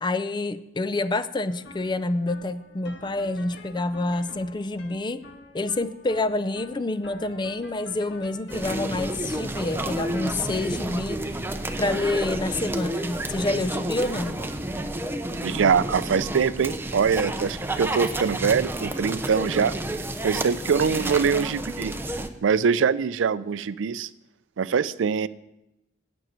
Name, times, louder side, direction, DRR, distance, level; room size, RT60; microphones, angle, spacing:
voice 1, 0.0-5.2 5.5-11.2 11.8-14.4, left 2 dB, 25° left, 13 dB, 0.5 m, -28 dB
sound 1, 1.5-18.7, left 2 dB, 65° left, 1.5 m, -50 dB
sound 2, 8.5-22.3, right 1 dB, 10° right, 0.7 m, -30 dB
voice 2, 15.4-19.7 20.2-21.9 22.4-24.1 24.6-25.3, right 6 dB, 85° right, 17 dB, 0.4 m, -23 dB
10.5 x 6.2 x 8.8 m, 0.92 s
head